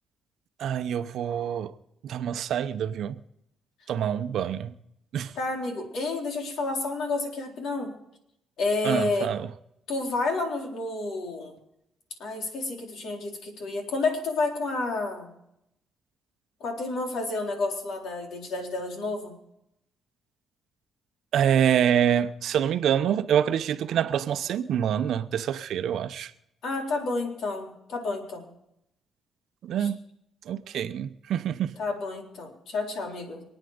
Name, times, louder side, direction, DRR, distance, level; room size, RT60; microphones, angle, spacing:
voice 1, 0.6-1.7 2.0-3.2 3.9-4.7 5.1-5.3 8.8-9.5 21.3-26.3 29.6-30.0 30.5-31.8, right 9 dB, 75° right, 0.8 m, -26 dB
voice 2, 5.4-8.0 8.6-9.3 9.9-11.5 12.2-15.3 16.6-19.3 26.6-28.5 29.8-29.9 31.8-33.4, left 3 dB, 75° left, 4.0 m, -30 dB
26.0 x 9.1 x 5.2 m
cardioid pair, 90°, 0 cm